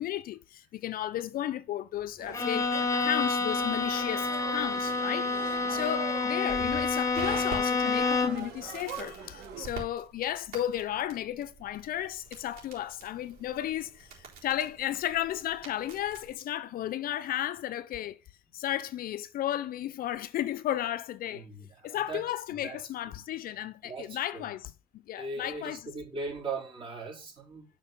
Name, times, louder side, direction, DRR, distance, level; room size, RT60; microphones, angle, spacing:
voice 1, 0.0-18.2 18.5-21.5 21.8-25.9, left 12 dB, 60° left, 0.5 m, -34 dB
sound 1, 2.2-9.7, right 7 dB, 75° right, 2.1 m, -43 dB
Bowed string instrument, 2.3-8.5, left 4 dB, 20° left, 1.2 m, -29 dB
Crackle, 6.5-16.3, right 6 dB, 60° right, 4.0 m, -45 dB
voice 2, 21.3-22.2 22.5-22.8 23.8-24.5 25.2-27.7, right 3 dB, 30° right, 4.3 m, -39 dB
7.3 x 4.6 x 5.7 m
cardioid pair, 110°, 17 cm